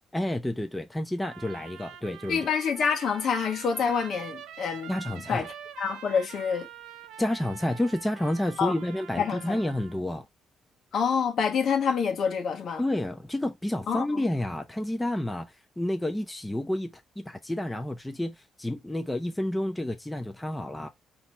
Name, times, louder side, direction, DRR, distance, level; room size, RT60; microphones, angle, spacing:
voice 1, 0.1-2.4 4.9-5.5 7.2-10.2 12.8-16.9 17.2-20.9, left 1 dB, 10° left, 0.8 m, -30 dB
Trumpet, 1.2-10.0, right 10 dB, 90° right, 0.7 m, -45 dB
voice 2, 2.3-4.9 5.3-5.5 5.8-6.7 8.6-8.7 9.2-9.6 10.9-12.8 13.9-14.3, left 6 dB, 65° left, 1.3 m, -27 dB
3.9 x 3.1 x 4.3 m
cardioid pair, 90°, 0 cm